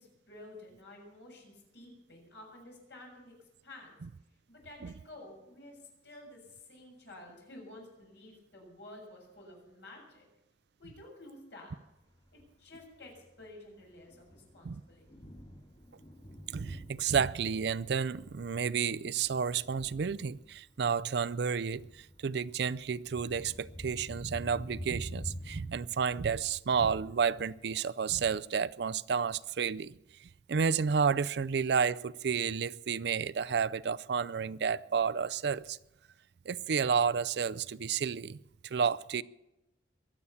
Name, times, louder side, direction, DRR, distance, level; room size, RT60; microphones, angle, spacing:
voice 1, 0.0-3.4 3.6-4.0 4.5-10.3 10.8-11.8 12.3-15.0, left 1 dB, 75° left, 6.9 m, -51 dB
Thunder, 12.1-25.8, equal, 30° left, 3.3 m, -48 dB
voice 2, 16.5-29.9 30.5-35.8 36.5-39.2, right 6 dB, 70° right, 0.4 m, -31 dB
23.0 x 8.5 x 7.1 m
head